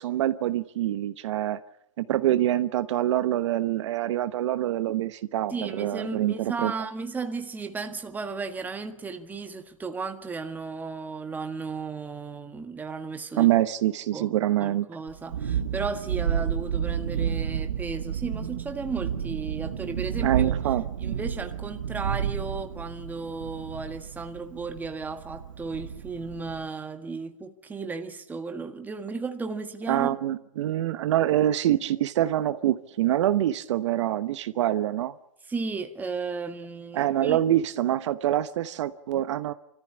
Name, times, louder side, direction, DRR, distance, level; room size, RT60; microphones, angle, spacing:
voice 1, 0.0-1.6 2.0-6.7 13.4-14.9 20.2-20.8 29.9-35.1 36.9-39.5, right 12 dB, 60° right, 1.0 m, -25 dB
voice 2, 5.5-13.5 14.1-14.3 14.6-20.5 21.0-30.2 35.5-37.4, right 4 dB, 10° right, 1.6 m, -34 dB
Thunderstorm, 15.1-26.6, right 8 dB, 80° right, 1.8 m, -31 dB
25.5 x 14.5 x 9.9 m
hypercardioid pair, 130°, 17 cm